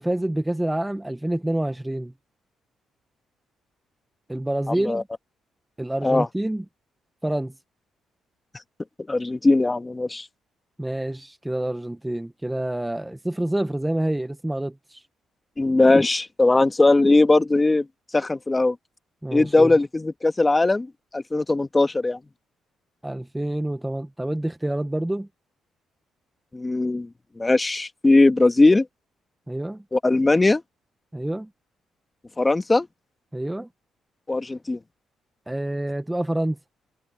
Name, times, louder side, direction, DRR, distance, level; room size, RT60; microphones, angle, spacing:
voice 1, 0.0-2.1 4.3-5.0 5.8-6.6 7.2-7.5 10.8-15.0 19.2-19.7 23.0-25.3 29.5-29.8 31.1-31.5 33.3-33.7 35.5-36.6, right 1 dB, 10° right, 1.0 m, -27 dB
voice 2, 4.7-5.0 6.0-6.3 9.1-10.3 15.6-17.9 18.1-18.8 19.3-20.9 21.1-22.2 26.5-27.1 27.4-28.9 29.9-30.6 32.4-32.9 34.3-34.8, left 2 dB, 20° left, 1.8 m, -19 dB
cardioid pair, 90°, 0 cm